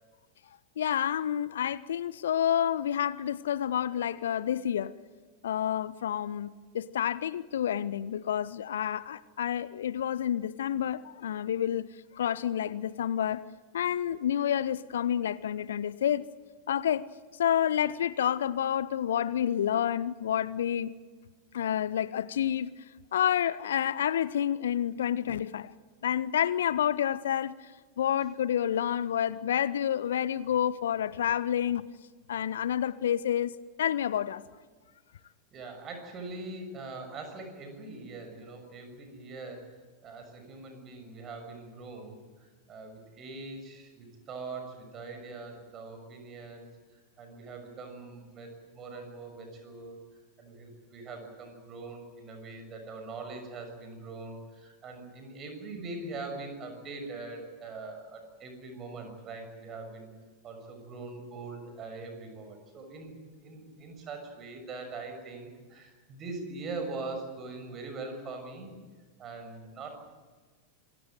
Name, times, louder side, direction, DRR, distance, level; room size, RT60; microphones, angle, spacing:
voice 1, 0.8-4.9 5.4-11.9 12.1-13.5 13.7-16.3 16.7-17.1 17.4-20.9 21.5-22.7 23.1-25.7 26.0-27.5 28.0-31.9 32.3-34.4, left 10 dB, 60° left, 20 dB, 0.7 m, -29 dB
voice 2, 35.5-50.0 50.4-60.1 60.4-68.7 69.2-70.2, right 3 dB, 30° right, 6 dB, 6.5 m, -42 dB
27.0 x 17.0 x 9.3 m, 1.4 s
figure-of-eight pair, 90°, 0 cm